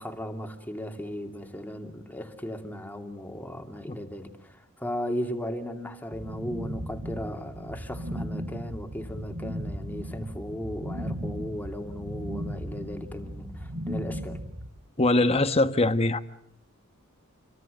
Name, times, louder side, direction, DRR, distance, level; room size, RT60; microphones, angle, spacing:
voice 1, 0.0-14.4, equal, 10° left, 2.7 m, -36 dB
sound 1, 6.1-14.7, equal, 65° right, 4.7 m, -36 dB
voice 2, 15.0-16.2, left 2 dB, 30° left, 1.3 m, -22 dB
29.0 x 23.5 x 6.6 m
head